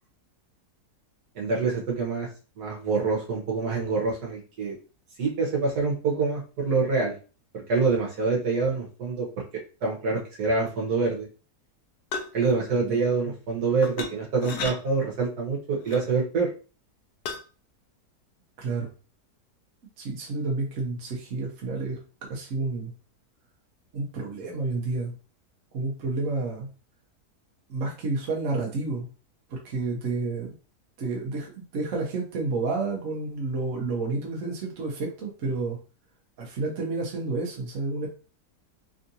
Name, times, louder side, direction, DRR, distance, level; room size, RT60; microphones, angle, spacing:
voice 1, 1.3-2.3 2.6-4.8 5.2-7.1 7.5-9.3 9.8-11.3 12.3-16.5, right 4 dB, 75° right, -2 dB, 1.5 m, -26 dB
sound 1, 12.1-12.4 13.8-14.1 14.4-14.7 15.9-16.0 17.3-17.4, left 5 dB, 90° left, 1.2 m, -32 dB
voice 2, 18.6-18.9 20.0-22.0 22.3-22.9 23.9-25.1 25.7-26.7 27.7-29.1 29.5-30.5 31.0-35.8 36.4-38.1, right 3 dB, 60° right, -1 dB, 1.1 m, -30 dB
3.5 x 2.5 x 2.7 m, 0.35 s
omnidirectional pair, 1.7 m